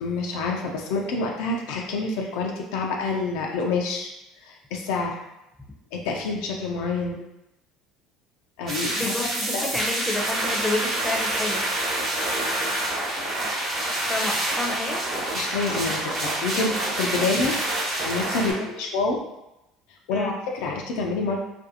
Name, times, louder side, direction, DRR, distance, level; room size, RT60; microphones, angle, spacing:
voice 1, 0.0-4.1 4.4-5.2 5.9-7.2 8.6-9.1 9.5-9.7 15.3-17.5 18.0-19.2 20.1-21.4, left 3 dB, 75° left, 0 dB, 0.3 m, -27 dB
sound 1, 8.7-18.5, right 1 dB, 50° right, 1.0 m, -27 dB
voice 2, 8.9-11.6 14.1-15.0 18.4-18.7 20.1-20.3, left 2 dB, ahead, -1 dB, 0.6 m, -30 dB
2.5 x 2.3 x 2.6 m, 0.92 s
hypercardioid pair, 75°, 0 cm